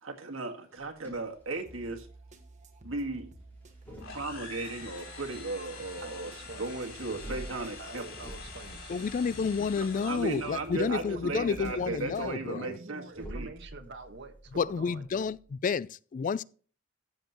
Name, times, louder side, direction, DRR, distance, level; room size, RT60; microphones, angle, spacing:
voice 1, 0.0-2.1 2.8-3.3 4.1-6.3 6.6-8.0 9.8-13.5, right 3 dB, 85° right, 1.8 m, -36 dB
sound 1, 0.7-2.1 3.4-4.8 7.1-9.6 11.2-11.9 13.1-15.5, right 1 dB, 10° left, 4.9 m, -47 dB
sound 2, 1.7-12.3, right 2 dB, 40° right, 1.4 m, -52 dB
sound 3, 4.0-10.7, left 4 dB, 80° left, 3.0 m, -46 dB
voice 2, 6.0-6.7 7.6-9.1 10.4-15.0, right 3 dB, 60° right, 1.5 m, -47 dB
voice 3, 8.9-12.8 14.6-16.4, left 5 dB, 40° left, 0.3 m, -30 dB
14.0 x 7.5 x 3.0 m
head